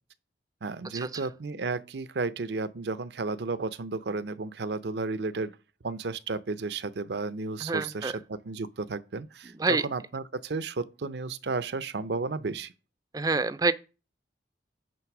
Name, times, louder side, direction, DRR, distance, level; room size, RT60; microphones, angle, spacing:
voice 1, 0.6-5.5 5.8-12.7, right 3 dB, 70° right, 0.6 m, -33 dB
voice 2, 7.6-8.1 9.6-9.8 13.1-13.7, right 3 dB, 20° right, 0.4 m, -26 dB
9.2 x 3.5 x 6.0 m
head